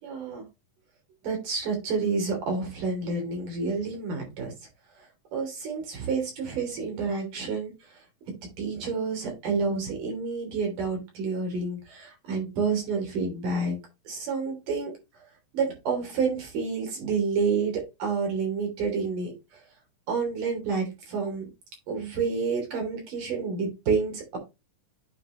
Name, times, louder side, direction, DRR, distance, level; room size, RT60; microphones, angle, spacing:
voice 1, 0.0-0.4 1.2-4.5 5.3-7.7 8.6-13.8 14.1-14.9 15.5-19.3 20.1-21.5 21.9-24.4, right 4 dB, 70° right, 2 dB, 4.7 m, -29 dB
9.3 x 4.8 x 3.2 m, 0.25 s
omnidirectional pair, 3.8 m